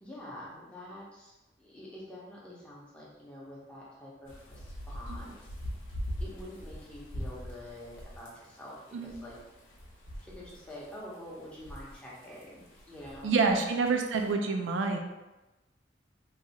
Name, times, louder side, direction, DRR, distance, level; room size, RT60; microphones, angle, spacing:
voice 1, 0.0-5.5 6.2-9.4 10.2-13.6, left 1 dB, 5° left, -6 dB, 0.7 m, -47 dB
sound 1, 4.3-14.3, equal, 80° left, 0.7 m, -43 dB
voice 2, 13.2-15.0, right 4 dB, 75° right, 3 dB, 0.4 m, -27 dB
3.1 x 2.3 x 2.8 m, 1.0 s
head